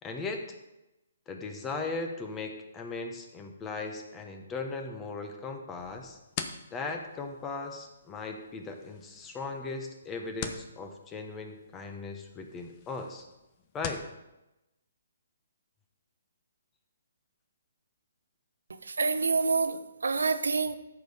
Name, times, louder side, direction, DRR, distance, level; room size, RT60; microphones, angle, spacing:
voice 1, 0.0-0.6 1.3-6.2 6.7-13.3 13.7-14.0, left 3 dB, 15° left, 4 dB, 1.2 m, -38 dB
sound 1, 5.8-14.1, left 7 dB, 35° left, 0.9 m, -45 dB
voice 2, 18.9-20.8, right 4 dB, 85° right, 9 dB, 0.9 m, -27 dB
13.5 x 5.5 x 5.0 m, 0.97 s
hypercardioid pair, 145°, 0 cm